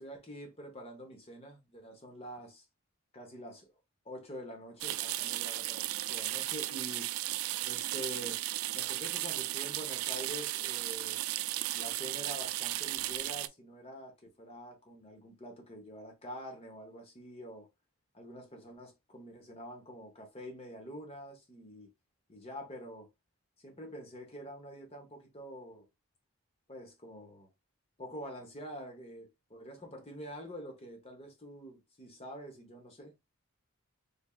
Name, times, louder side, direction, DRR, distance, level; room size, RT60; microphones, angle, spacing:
voice 1, 0.0-2.6 3.1-3.8 4.0-7.1 7.6-8.4 8.7-11.2 11.7-17.7 18.1-21.9 22.3-23.1 23.6-25.9 26.7-27.5 28.0-33.1, equal, 30° left, 1.0 m, -46 dB
sound 1, 4.8-13.5, right 15 dB, 80° right, 0.3 m, -35 dB
3.5 x 3.5 x 2.4 m
head